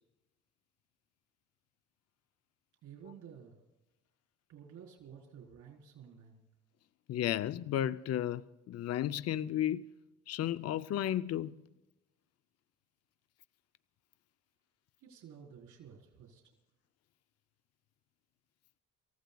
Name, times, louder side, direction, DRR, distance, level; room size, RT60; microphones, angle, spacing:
voice 1, 2.8-3.5 4.5-6.4 15.0-16.4, right 7 dB, 75° right, 4.1 m, -52 dB
voice 2, 7.1-9.9 10.3-11.6, left 11 dB, 55° left, 0.5 m, -33 dB
28.0 x 15.5 x 2.3 m
cardioid pair, 90°, 30 cm